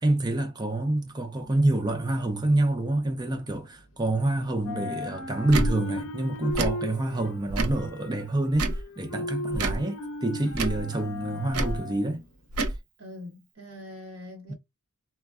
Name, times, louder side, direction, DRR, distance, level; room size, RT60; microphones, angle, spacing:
voice 1, 0.0-12.2 14.5-14.6, right 2 dB, 20° right, 0.5 m, -27 dB
sound 1, 1.4-4.2 4.5-12.7, left 1 dB, 60° left, 0.6 m, -37 dB
Tick / Tick-tock, 5.5-5.7 6.5-6.7 7.5-7.8 8.5-8.8 9.5-9.8 10.5-10.8 11.5-11.8 12.5-12.8, right 2 dB, 90° right, 0.6 m, -27 dB
voice 2, 13.0-14.5, left 1 dB, 60° right, 1.1 m, -43 dB
3.3 x 2.2 x 2.3 m
head